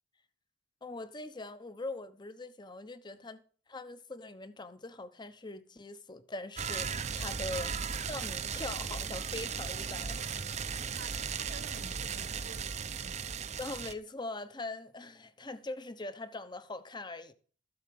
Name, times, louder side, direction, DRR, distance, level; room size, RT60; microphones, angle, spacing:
voice 1, 0.8-3.4 3.7-7.7 8.1-10.2 13.6-17.3, left 2 dB, 25° left, 1.0 m, -42 dB
sound 1, 6.6-13.9, right 6 dB, 40° right, 0.7 m, -36 dB
voice 2, 7.2-7.7 10.7-13.2, right 2 dB, 75° right, 1.6 m, -53 dB
14.0 x 8.1 x 5.3 m
head